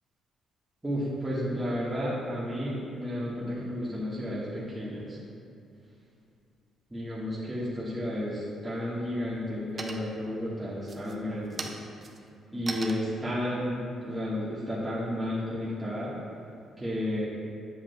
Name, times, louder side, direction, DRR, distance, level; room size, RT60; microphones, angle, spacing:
voice 1, 0.8-5.2 6.9-11.7 12.5-16.2 16.8-17.3, equal, 15° right, -9 dB, 1.4 m, -32 dB
sound 1, 8.6-8.7 9.1-9.5 9.8-10.3 10.8-15.2, right 3 dB, 40° right, 0.6 m, -41 dB
7.7 x 7.2 x 2.2 m, 2.6 s
cardioid pair, 90°, 0 cm